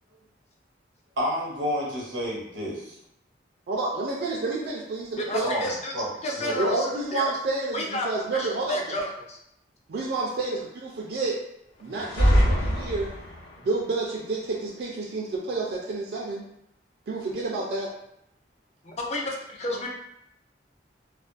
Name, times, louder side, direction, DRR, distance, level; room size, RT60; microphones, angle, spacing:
voice 1, 1.2-2.7 5.4-6.5, equal, 90° right, -4 dB, 0.8 m, -30 dB
voice 2, 3.7-5.5 6.5-8.9 9.9-11.4 11.8-13.1 13.6-16.4 17.1-17.9, right 3 dB, 60° right, -3 dB, 0.4 m, -29 dB
voice 3, 5.2-5.9 6.2-7.2 7.7-8.1 8.3-9.4 19.0-19.2 19.6-19.9, left 1 dB, 35° left, 0 dB, 0.4 m, -31 dB
sound 1, 11.9-13.6, equal, 90° left, 0.8 m, -23 dB
2.4 x 2.1 x 2.4 m, 0.78 s
head